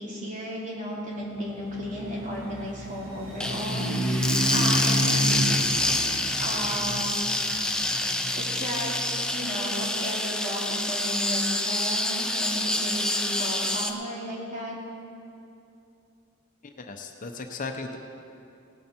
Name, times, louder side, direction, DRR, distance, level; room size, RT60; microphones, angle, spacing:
voice 1, 0.0-5.8 6.4-7.3 8.4-9.0 9.3-14.7, equal, 40° right, -5 dB, 2.9 m, -34 dB
sound 1, 1.4-9.4, equal, 70° right, 2.5 m, -31 dB
sound 2, 3.4-13.9, left 1 dB, 5° left, 0.6 m, -27 dB
voice 2, 16.8-18.0, left 3 dB, 40° left, 4 dB, 0.7 m, -37 dB
18.0 x 9.0 x 4.4 m, 2.6 s
head